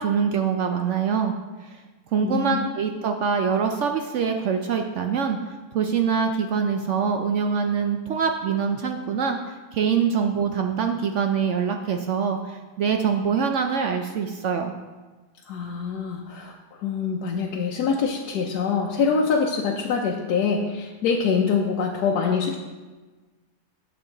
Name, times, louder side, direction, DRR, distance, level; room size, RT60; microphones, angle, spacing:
voice 1, 0.0-1.3 1.7-1.8 2.1-14.7, right 6 dB, 65° right, 4 dB, 0.7 m, -24 dB
voice 2, 2.2-2.7 15.5-22.6, left 5 dB, 85° left, 0 dB, 1.2 m, -25 dB
8.9 x 6.8 x 3.8 m, 1.3 s
omnidirectional pair, 1.6 m